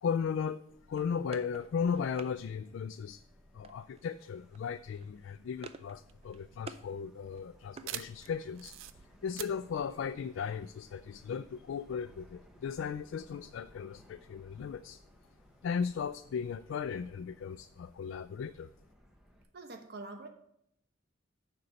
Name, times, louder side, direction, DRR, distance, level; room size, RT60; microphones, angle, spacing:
voice 1, 0.0-0.6 0.9-3.2 3.5-15.0 15.6-18.7, left 6 dB, 70° left, 11 dB, 0.3 m, -36 dB
Subway metro underground, 0.7-19.4, equal, 5° right, 0.8 m, -61 dB
sound 1, 0.9-2.3 3.6-4.1 4.3-4.6 4.9-6.0 6.2-6.9 7.3-8.5, right 4 dB, 30° right, 0.4 m, -50 dB
sound 2, 6.1-11.1, right 12 dB, 90° right, 0.4 m, -46 dB
voice 2, 19.5-20.3, right 3 dB, 55° right, 5 dB, 0.9 m, -45 dB
6.8 x 5.2 x 6.4 m, 0.75 s
head